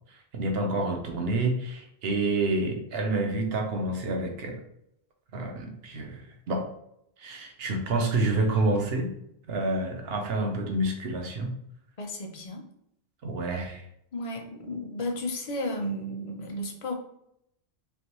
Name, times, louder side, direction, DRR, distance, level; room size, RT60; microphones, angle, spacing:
voice 1, 0.3-4.6 5.3-6.7 7.2-9.1 9.5-11.5 13.2-13.8, right 2 dB, 70° right, 3 dB, 1.0 m, -28 dB
voice 2, 12.0-12.6 14.1-16.9, left 1 dB, 40° left, 3 dB, 0.6 m, -33 dB
3.4 x 3.0 x 3.0 m, 0.77 s
omnidirectional pair, 1.1 m